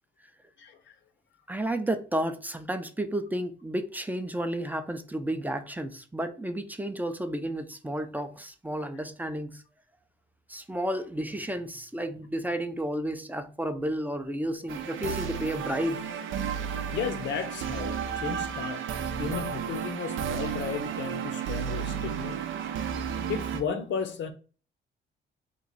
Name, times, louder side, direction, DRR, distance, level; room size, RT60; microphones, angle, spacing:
voice 1, 1.5-9.6 10.5-16.1, right 1 dB, 10° right, 0.4 m, -32 dB
sound 1, 14.7-23.6, right 8 dB, 85° right, 0.5 m, -33 dB
voice 2, 16.9-18.8 19.2-22.5 23.3-24.3, left 6 dB, 70° left, 0.7 m, -34 dB
3.0 x 2.5 x 3.9 m
cardioid pair, 90°, 20 cm